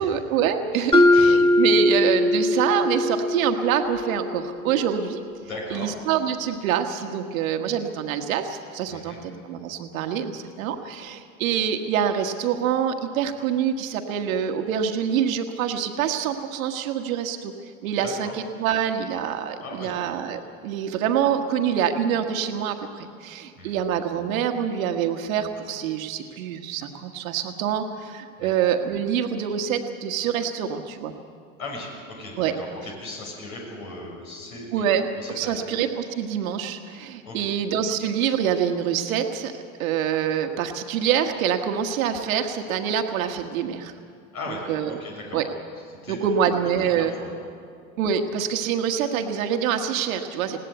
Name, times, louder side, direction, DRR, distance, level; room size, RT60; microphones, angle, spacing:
voice 1, 0.0-5.2 5.7-17.5 17.8-31.1 32.4-32.5 34.7-43.9 44.5-45.0 45.3-45.5 46.1-47.1 48.0-50.6, right 8 dB, 70° right, 6 dB, 1.5 m, -26 dB
voice 2, 0.7-1.3 5.4-5.9 8.9-9.2 18.0-18.3 19.6-19.9 23.6-23.8 28.4-28.5 31.6-34.8 35.2-35.6 37.2-37.5 44.3-45.4 46.0-46.3 46.8-47.3, left 2 dB, 80° left, -1 dB, 6.6 m, -37 dB
Mallet percussion, 0.9-5.0, left 1 dB, 10° left, 2.1 m, -21 dB
21.0 x 16.5 x 8.1 m, 2.3 s
hypercardioid pair, 90°, 42 cm